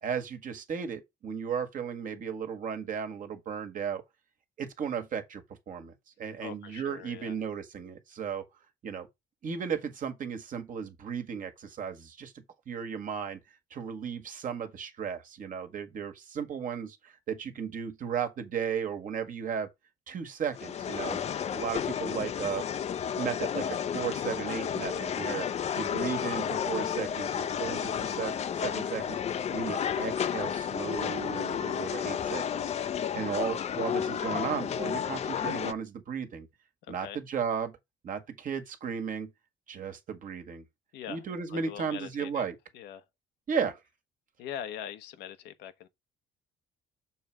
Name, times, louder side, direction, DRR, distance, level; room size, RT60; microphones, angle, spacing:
voice 1, 0.0-4.0 4.6-8.4 8.8-9.1 9.4-12.3 12.6-13.4 13.7-19.7 20.1-21.2 21.5-22.7 23.1-25.5 25.7-32.6 33.1-36.5 36.9-37.8 38.0-39.3 39.7-40.6 41.1-42.5 43.5-43.8, right 7 dB, 50° right, 1.6 m, -35 dB
voice 2, 6.4-7.4 36.9-37.2 40.9-41.2 41.5-42.5 42.7-43.0 44.4-45.9, left 9 dB, 80° left, 1.0 m, -42 dB
sound 1, 20.5-35.7, left 8 dB, 40° left, 0.6 m, -32 dB
6.7 x 3.3 x 6.1 m
cardioid pair, 110°, 17 cm